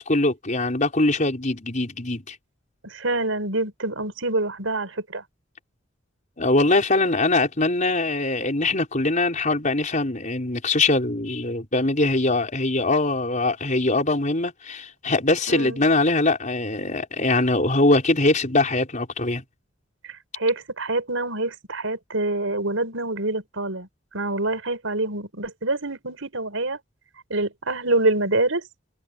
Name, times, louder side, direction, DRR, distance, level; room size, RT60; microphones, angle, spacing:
voice 1, 0.0-2.4 6.4-19.4, left 2 dB, 40° left, 4.9 m, -22 dB
voice 2, 2.8-5.2 15.5-15.8 20.0-23.9 24.1-26.8 27.3-28.7, right 2 dB, 85° right, 5.4 m, -26 dB
head